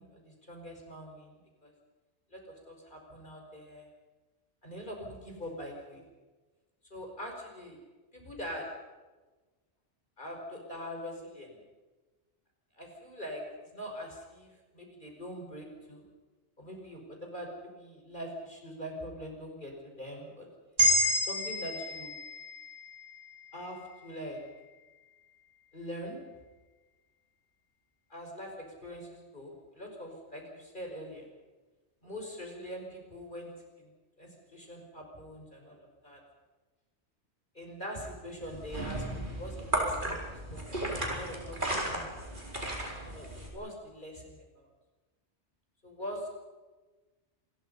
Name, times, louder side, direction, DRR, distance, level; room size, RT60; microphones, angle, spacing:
voice 1, 0.0-1.7 2.3-3.9 4.6-6.0 6.9-7.8 8.1-8.7 10.2-11.6 12.8-13.4 13.7-16.0 16.6-19.7 20.0-20.5 21.2-22.1 23.5-24.4 25.7-26.2 28.1-28.5 28.8-31.3 32.0-33.5 34.2-36.2 37.6-42.1 43.0-44.4 45.8-46.3, equal, 45° left, 1 dB, 5.5 m, -43 dB
sound 1, 20.8-25.0, equal, 75° right, 8.3 m, -31 dB
sound 2, 38.4-43.5, right 1 dB, 45° right, 4.8 m, -35 dB
27.5 x 21.5 x 5.6 m, 1.2 s
omnidirectional pair, 1.2 m